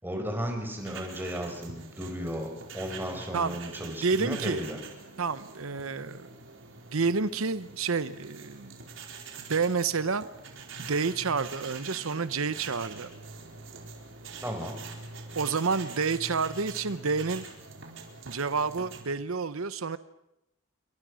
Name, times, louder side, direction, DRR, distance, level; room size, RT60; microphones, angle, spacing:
voice 1, 0.0-4.8 14.4-14.8, equal, 10° right, 3 dB, 5.0 m, -34 dB
sound 1, 0.8-19.0, right 4 dB, 65° right, 4.5 m, -45 dB
voice 2, 3.3-4.6 5.2-6.3 6.9-8.8 9.5-10.2 10.8-13.1 15.4-17.5 18.3-20.0, right 4 dB, 85° right, 14 dB, 0.9 m, -29 dB
28.5 x 23.5 x 6.4 m, 0.85 s
head